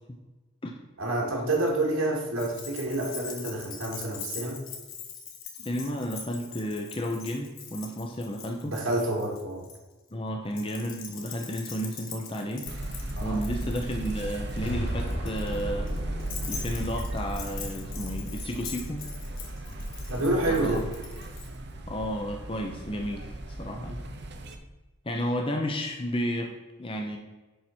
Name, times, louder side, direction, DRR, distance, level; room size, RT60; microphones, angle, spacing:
voice 1, 1.0-4.6 8.6-9.6 13.2-13.4 20.1-20.9 23.8-24.0, right 2 dB, 85° right, -1 dB, 2.5 m, -28 dB
Keys jangling, 2.4-9.8 10.5-21.5, left 7 dB, 75° left, 1.4 m, -43 dB
voice 2, 5.6-8.7 10.1-12.7 13.2-15.9 16.5-19.0 20.5-20.9 21.9-24.0 25.0-27.2, equal, 25° left, 3 dB, 0.7 m, -32 dB
sound 1, 12.7-24.6, right 1 dB, 50° right, 0.8 m, -36 dB
sound 2, 14.6-18.7, equal, 60° left, 2.9 m, -37 dB
10.0 x 4.8 x 4.4 m, 1.2 s
head